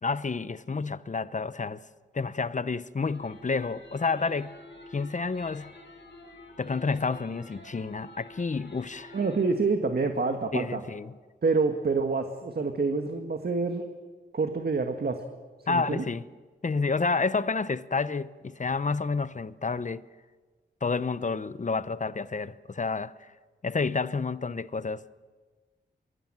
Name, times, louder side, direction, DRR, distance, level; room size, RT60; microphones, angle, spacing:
voice 1, 0.0-1.8 2.1-4.5 4.9-5.7 6.6-9.2 10.5-11.2 15.7-16.2 16.6-20.0 20.8-23.3 23.6-25.2, left 4 dB, 40° left, 0.9 m, -29 dB
sound 1, 3.0-9.4, left 2 dB, 70° left, 5.9 m, -49 dB
voice 2, 9.1-10.8 11.4-13.8 14.3-15.2 15.7-16.0, right 4 dB, 55° right, 1.8 m, -27 dB
24.0 x 23.5 x 7.6 m
wide cardioid pair, 70°, 19 cm